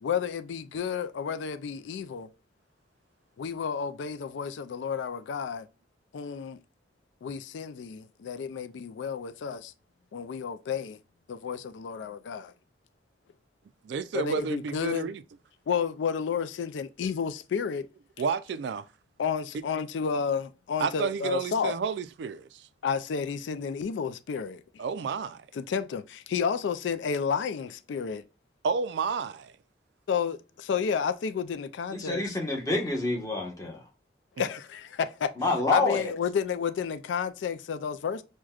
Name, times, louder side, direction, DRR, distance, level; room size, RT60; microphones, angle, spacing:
voice 1, 0.0-2.3 3.4-5.7 6.1-6.6 7.2-9.7 10.1-11.0 11.3-12.5 14.1-15.1 15.7-17.9 19.2-21.7 22.8-24.6 25.5-28.2 30.1-32.2 34.4-35.3 35.7-38.2, left 6 dB, 85° left, 0.3 m, -31 dB
voice 2, 13.8-15.2 18.2-18.9 20.8-22.7 24.8-25.5 28.6-29.5, right 5 dB, 70° right, 0.3 m, -31 dB
voice 3, 31.9-33.8 35.4-36.1, left 2 dB, 20° left, 1.0 m, -27 dB
6.1 x 2.2 x 2.3 m
head